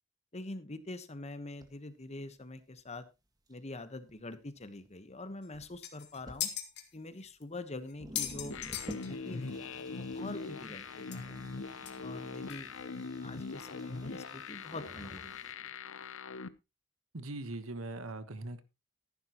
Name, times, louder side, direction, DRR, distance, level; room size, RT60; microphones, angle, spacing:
voice 1, 0.3-3.0 3.5-6.5 6.9-8.6 9.0-11.5 12.0-15.3 15.6-15.7, left 2 dB, 30° left, 12 dB, 1.2 m, -45 dB
sound 1, 1.6-1.7 2.8-2.9 3.5-3.6 4.1-4.9 5.3-5.8 6.2-6.4 7.3-7.4 7.6-7.7 7.9-15.5, equal, 20° right, 1.7 m, -51 dB
sound 2, 5.4-5.5 5.8-6.8 7.4-7.5 7.9-9.5 9.8-9.9 10.1-10.2 11.1-11.2 11.8-11.9 12.5-12.6, left 11 dB, 55° left, 2.1 m, -38 dB
sound 3, 8.5-16.5, left 4 dB, 70° left, 0.8 m, -42 dB
voice 2, 17.1-18.6, right 2 dB, 85° right, 12 dB, 1.3 m, -40 dB
14.5 x 11.0 x 3.0 m, 0.26 s
head